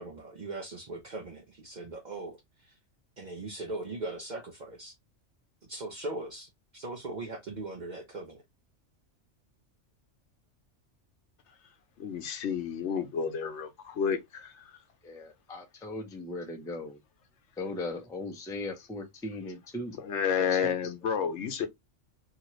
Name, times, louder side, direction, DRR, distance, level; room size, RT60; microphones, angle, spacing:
voice 1, 0.0-2.4 2.7-2.8 3.2-4.9 5.7-8.4, right 2 dB, 50° right, 0.5 m, -39 dB
voice 2, 12.0-14.8 20.0-21.7, left 7 dB, 70° left, 0.9 m, -31 dB
voice 3, 15.0-17.0 17.6-20.0 20.5-20.7, left 2 dB, 5° left, 0.3 m, -38 dB
2.8 x 2.5 x 2.9 m
omnidirectional pair, 1.3 m